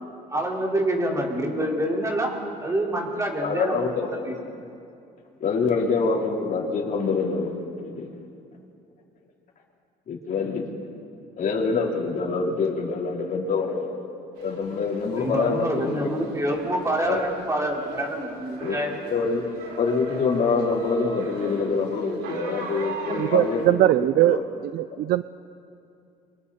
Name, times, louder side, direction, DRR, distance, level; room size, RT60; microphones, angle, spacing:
voice 1, 0.3-3.9 4.2-4.4 15.2-19.0, right 1 dB, 20° right, -2 dB, 4.6 m, -26 dB
voice 2, 3.4-4.1 5.4-7.5 7.8-8.1 10.1-10.6 11.4-14.0 14.4-16.1 17.1-17.2 18.6-18.8 19.1-19.4 19.8-23.9 24.2-24.4, left 4 dB, 50° left, -1 dB, 3.9 m, -25 dB
sound 1, 14.4-23.7, right 3 dB, 85° right, 4.7 m, -39 dB
voice 3, 23.2-24.4 24.7-25.2, right 15 dB, 65° right, 14 dB, 0.5 m, -20 dB
29.5 x 25.0 x 4.3 m, 2.5 s
cardioid pair, 110°, 17 cm